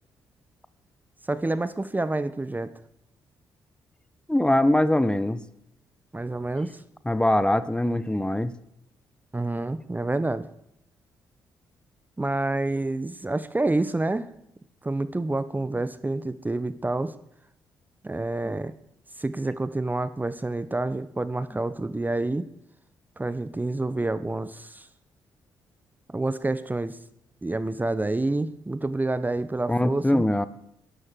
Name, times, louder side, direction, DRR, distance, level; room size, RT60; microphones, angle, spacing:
voice 1, 1.3-2.7 6.1-6.8 9.3-10.5 12.2-14.3 14.8-17.1 18.0-18.7 19.2-22.5 23.2-24.9 26.1-27.0 27.4-30.2, right 2 dB, 20° right, 15 dB, 1.0 m, -28 dB
voice 2, 4.3-5.4 7.0-8.5 18.4-18.5 29.7-30.5, left 1 dB, 10° left, 15 dB, 1.0 m, -22 dB
11.5 x 11.0 x 7.6 m, 0.76 s
hypercardioid pair, 45°, 9 cm